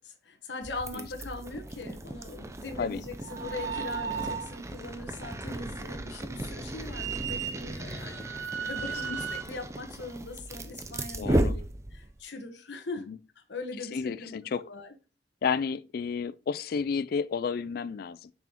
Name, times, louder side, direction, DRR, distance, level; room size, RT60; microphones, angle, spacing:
voice 1, 0.0-8.3 8.7-11.6 11.9-13.1 13.4-14.3 14.6-14.9, left 3 dB, 70° left, 1.3 m, -41 dB
sound 1, 0.6-12.2, right 1 dB, 15° right, 0.5 m, -35 dB
sound 2, 3.2-4.6 6.9-9.4, right 7 dB, 80° right, 0.8 m, -36 dB
voice 2, 11.2-11.6 13.1-13.2 13.9-14.6 15.4-18.3, left 6 dB, 50° left, 0.3 m, -31 dB
7.1 x 6.1 x 3.0 m
head